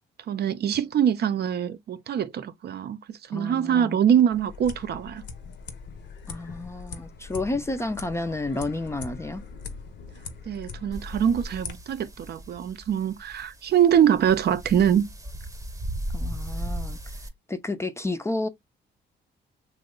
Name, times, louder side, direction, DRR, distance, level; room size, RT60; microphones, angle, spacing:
voice 1, 0.3-5.2 10.5-15.0, right 9 dB, 55° right, 0.5 m, -23 dB
voice 2, 3.3-4.0 6.3-9.4 16.1-17.0 17.5-18.5, left 2 dB, 15° left, 0.4 m, -31 dB
sound 1, 4.3-11.7, left 5 dB, 65° left, 0.7 m, -41 dB
sound 2, 10.9-17.3, right 1 dB, 15° right, 0.9 m, -36 dB
3.0 x 2.1 x 3.6 m
cardioid pair, 90°, 20 cm